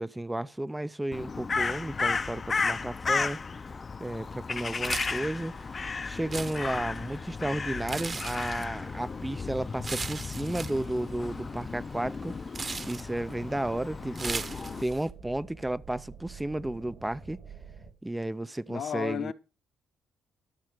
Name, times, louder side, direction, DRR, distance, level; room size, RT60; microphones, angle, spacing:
voice 1, 0.0-3.4 4.0-5.5 6.0-12.3 12.8-14.4 14.8-17.4 18.0-19.3, right 1 dB, 10° right, 0.5 m, -33 dB
Crow, 1.1-14.8, left 4 dB, 35° left, 0.6 m, -34 dB
sound 1, 4.8-15.1, right 4 dB, 30° right, 1.3 m, -40 dB
sound 2, 12.5-17.9, right 5 dB, 55° right, 2.8 m, -49 dB
voice 2, 18.7-19.3, left 9 dB, 65° left, 1.0 m, -33 dB
12.5 x 6.6 x 6.5 m
cardioid pair, 90°, 0 cm